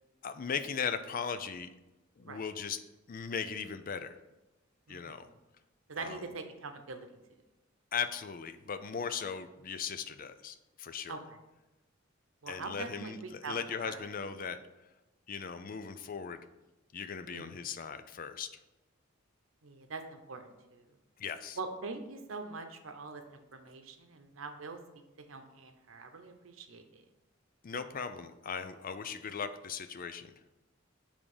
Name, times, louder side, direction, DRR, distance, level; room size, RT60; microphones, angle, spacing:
voice 1, 0.2-1.7 2.2-2.8 3.1-4.2 4.9-5.3 6.0-6.2 7.9-11.2 12.5-14.6 15.3-16.4 16.9-18.5 21.2-21.6 27.6-30.3, left 6 dB, 45° left, 10 dB, 0.4 m, -38 dB
voice 2, 4.9-5.3 5.9-7.1 11.1-11.4 12.4-13.6 13.8-14.0 17.3-17.6 19.6-20.8 21.6-23.2 23.5-24.8 25.3-27.0, right 4 dB, 85° right, 7 dB, 0.8 m, -43 dB
7.4 x 3.5 x 4.9 m, 1.0 s
head